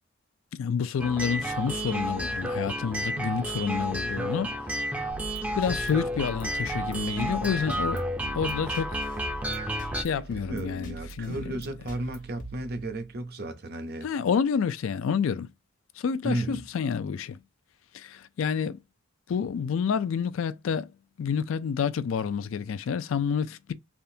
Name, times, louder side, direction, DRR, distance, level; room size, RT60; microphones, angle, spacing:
voice 1, 0.5-4.5 5.5-8.0 8.3-9.0 9.9-11.4 14.0-15.5 16.0-17.4 17.9-18.8 19.3-20.9 21.2-23.7, left 6 dB, 65° left, 0.3 m, -29 dB
sound 1, 1.0-10.0, equal, 5° right, 0.5 m, -31 dB
sound 2, 5.1-13.3, right 2 dB, 40° left, 0.8 m, -43 dB
voice 2, 10.2-14.1 16.2-16.6, right 1 dB, 50° right, 0.6 m, -34 dB
3.4 x 2.4 x 2.7 m
head